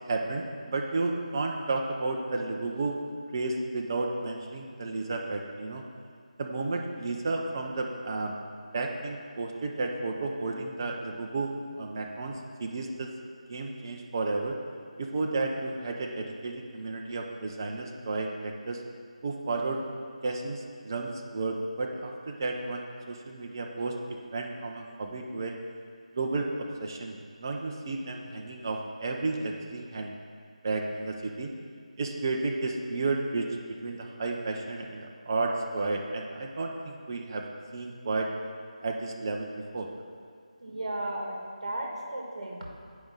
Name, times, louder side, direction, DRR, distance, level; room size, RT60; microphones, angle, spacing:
voice 1, 0.1-3.0 3.3-5.8 6.4-8.3 8.7-12.3 12.6-13.1 13.5-14.6 15.0-18.8 19.2-19.8 20.2-23.9 24.3-25.5 26.2-26.5 26.8-30.1 30.6-31.5 32.0-33.5 33.8-37.4 37.7-38.3 38.8-39.9, right 3 dB, 30° right, 1 dB, 0.5 m, -32 dB
voice 2, 40.6-42.7, right 1 dB, 55° right, -1 dB, 1.6 m, -35 dB
8.7 x 5.0 x 3.9 m, 2.1 s
figure-of-eight pair, 160°, 4 cm